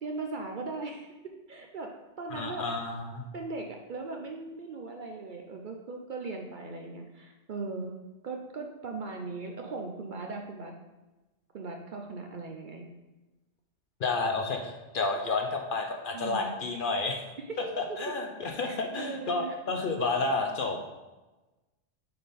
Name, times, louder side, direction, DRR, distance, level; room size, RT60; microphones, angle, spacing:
voice 1, 0.0-1.9 2.2-2.7 3.3-7.9 8.2-10.8 11.5-12.9 16.1-16.5 17.5-17.6 18.6-19.6, right 3 dB, 55° right, 2 dB, 0.6 m, -38 dB
voice 2, 2.3-3.3 14.0-17.2 17.8-20.9, left 3 dB, 55° left, 3 dB, 0.7 m, -31 dB
6.6 x 3.7 x 4.1 m, 1.1 s
omnidirectional pair, 1.2 m